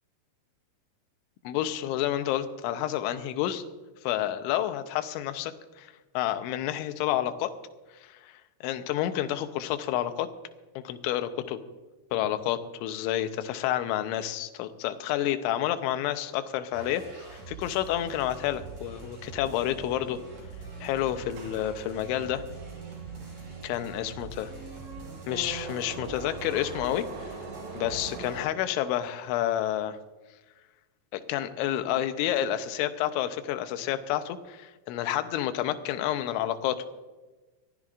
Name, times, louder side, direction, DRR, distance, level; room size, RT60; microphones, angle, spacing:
voice 1, 1.4-3.6 4.0-5.5 5.8-7.5 8.0-8.3 8.6-10.3 10.8-11.6 12.1-20.2 20.8-22.4 23.6-24.5 25.3-27.1 27.7-30.0 31.1-36.9, left 12 dB, 80° left, 9 dB, 3.0 m, -29 dB
sound 1, 16.7-28.4, right 4 dB, 35° right, 5.8 m, -44 dB
sound 2, 21.2-29.2, right 4 dB, 85° right, 4.8 m, -43 dB
23.5 x 15.5 x 2.5 m, 1.2 s
omnidirectional pair, 5.8 m